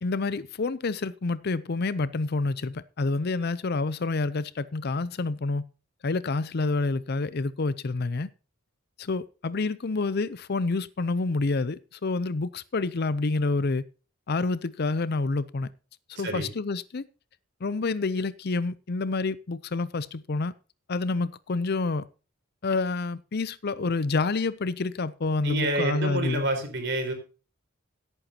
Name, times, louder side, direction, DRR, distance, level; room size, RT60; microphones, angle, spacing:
voice 1, 0.0-5.6 6.0-8.3 9.0-13.8 14.3-15.7 16.2-17.0 17.6-20.5 20.9-22.0 22.6-26.5, left 3 dB, 50° left, 0.6 m, -28 dB
voice 2, 25.4-27.1, right 2 dB, 55° right, 4.2 m, -28 dB
16.5 x 9.1 x 2.9 m
head